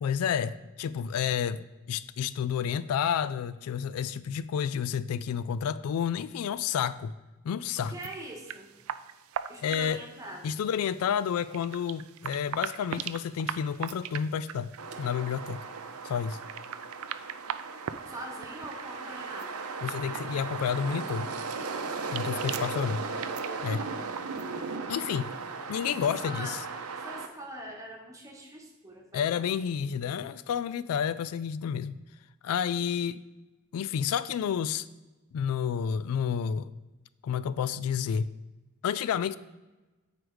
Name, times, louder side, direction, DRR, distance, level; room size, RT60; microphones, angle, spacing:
voice 1, 0.0-7.1 7.4-8.0 9.6-10.0 10.4-14.7 15.0-15.6 16.0-16.4 19.8-21.3 22.1-23.0 23.6-23.9 24.9-25.3 25.7-26.6 29.1-32.0 32.4-33.2 33.7-34.9 35.3-36.7 37.2-38.3 38.8-39.4, left 7 dB, 80° left, 0.3 m, -30 dB
voice 2, 7.8-8.7 9.5-10.6 18.1-19.6 26.0-26.6 27.0-29.4, right 1 dB, 15° right, 1.2 m, -43 dB
sound 1, 7.8-24.8, right 9 dB, 70° right, 0.4 m, -42 dB
sound 2, 14.8-27.3, right 4 dB, 90° right, 0.8 m, -37 dB
7.9 x 4.9 x 4.6 m
head